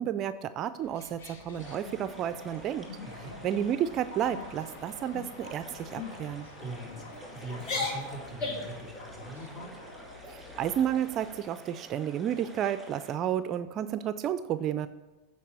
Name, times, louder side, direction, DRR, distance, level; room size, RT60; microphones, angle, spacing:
voice 1, 0.0-2.9 3.4-6.5 10.3-14.9, right 10 dB, 40° right, 13 dB, 0.4 m, -31 dB
sound 1, 0.8-11.4, left 2 dB, 75° left, 1.2 m, -49 dB
sound 2, 1.6-13.2, right 1 dB, 5° right, 2.2 m, -50 dB
sound 3, 1.8-2.4 2.9-3.1 3.5-3.8 4.1-4.5 5.1-5.5 5.9-6.1 6.8-7.2 7.6-8.8, left 3 dB, 50° left, 2.0 m, -37 dB
voice 2, 3.0-3.4 6.6-7.0 7.3-9.8, right 1 dB, 30° left, -2 dB, 3.1 m, -42 dB
8.3 x 4.6 x 6.9 m, 1.1 s
hypercardioid pair, 100°, 0 cm